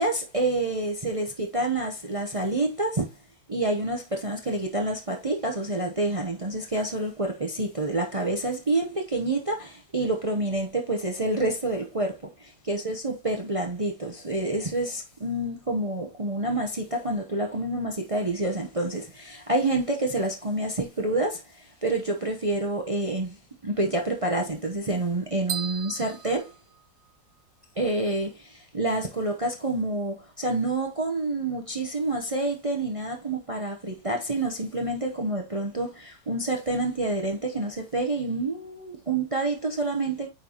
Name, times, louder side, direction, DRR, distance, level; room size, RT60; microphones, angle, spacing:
voice 1, 0.0-3.1 3.5-23.4 23.6-26.5 27.8-40.3, right 2 dB, 45° right, 0.4 m, -28 dB
sound 1, 25.5-27.4, right 8 dB, 85° right, 1.7 m, -37 dB
9.1 x 4.0 x 2.9 m
omnidirectional pair, 2.0 m